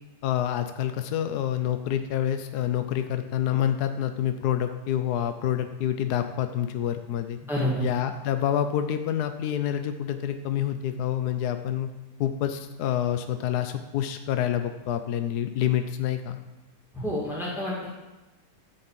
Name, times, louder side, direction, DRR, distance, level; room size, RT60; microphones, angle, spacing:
voice 1, 0.2-7.4 7.8-11.9 12.2-16.4, left 10 dB, 70° left, 8 dB, 1.2 m, -27 dB
voice 2, 7.5-7.9 16.9-17.9, left 1 dB, ahead, -5 dB, 2.2 m, -28 dB
13.0 x 5.4 x 7.4 m, 1.1 s
omnidirectional pair, 1.9 m